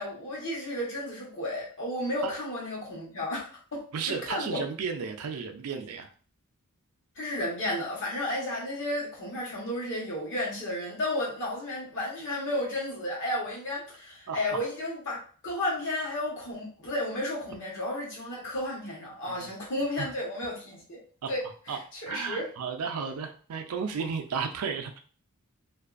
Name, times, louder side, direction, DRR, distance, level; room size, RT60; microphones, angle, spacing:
voice 1, 0.0-4.6 7.2-15.2 15.4-21.0 21.3-22.5, left 1 dB, 60° left, -4 dB, 1.1 m, -33 dB
voice 2, 3.9-6.1 14.3-14.6 19.4-19.5 20.0-20.1 21.2-21.3 21.7-21.8 22.1-24.9, right 6 dB, 75° right, 5 dB, 0.4 m, -33 dB
2.5 x 2.3 x 2.4 m, 0.41 s
head